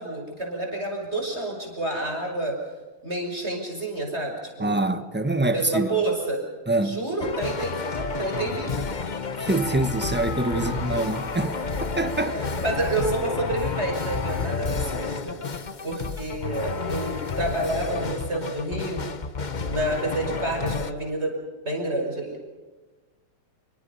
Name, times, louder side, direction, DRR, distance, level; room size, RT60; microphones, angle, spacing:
voice 1, 0.0-2.6 3.0-4.8 5.5-6.4 6.8-8.9 10.5-11.1 12.4-15.4 15.8-19.0 19.7-21.3 21.6-22.4, right 2 dB, 30° right, 5.9 m, -29 dB
voice 2, 4.6-5.9 6.7-7.0 9.4-12.4, right 2 dB, 5° right, 1.0 m, -25 dB
sound 1, 7.2-20.9, left 4 dB, 50° left, 0.5 m, -30 dB
29.0 x 24.0 x 5.7 m
omnidirectional pair, 2.4 m